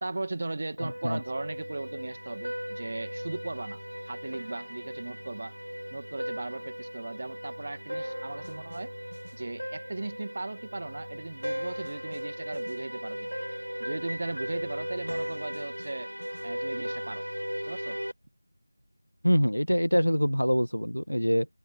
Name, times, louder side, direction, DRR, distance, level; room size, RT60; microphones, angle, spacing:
voice 1, 0.0-5.6 5.9-8.9 9.3-13.4 13.8-16.1 16.4-17.3 17.6-18.0, right 2 dB, 35° right, 2.0 m, -37 dB
voice 2, 0.8-1.2 19.2-21.5, equal, 85° left, 1.2 m, -25 dB
Soldiers March (Cinematic), 0.8-18.1, equal, 85° right, 7.4 m, -37 dB
figure-of-eight pair, 170°, 0 cm